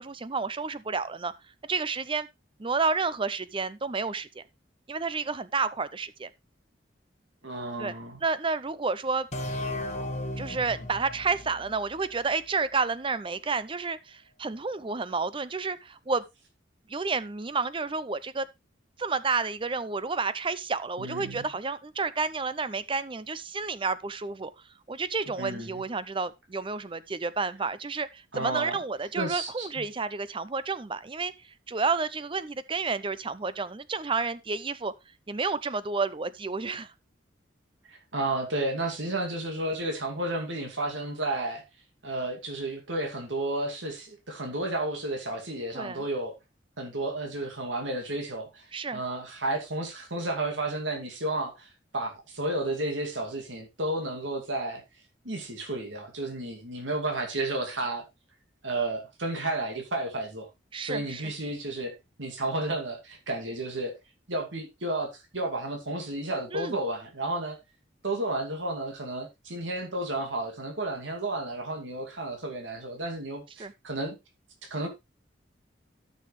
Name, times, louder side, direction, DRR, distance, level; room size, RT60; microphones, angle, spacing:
voice 1, 0.0-1.3 1.7-2.3 2.6-4.4 4.9-6.3 7.8-7.9 8.2-9.3 10.4-16.2 16.9-18.5 19.0-24.5 24.9-34.9 35.3-36.9 45.7-46.0 48.7-49.0 60.7-61.3 66.5-66.8 73.6-73.7, right 4 dB, 30° right, 0.6 m, -30 dB
voice 2, 7.4-8.2 21.0-21.5 25.4-25.8 28.3-28.8 29.2-29.8 37.9-41.6 42.0-46.4 46.8-54.8 55.2-58.0 58.6-60.5 60.8-61.9 62.2-63.9 64.3-67.6 68.0-74.2 74.6-74.9, right 2 dB, 85° right, 2.4 m, -32 dB
sound 1, 9.3-12.9, left 1 dB, 40° left, 1.7 m, -36 dB
12.5 x 6.5 x 3.2 m
head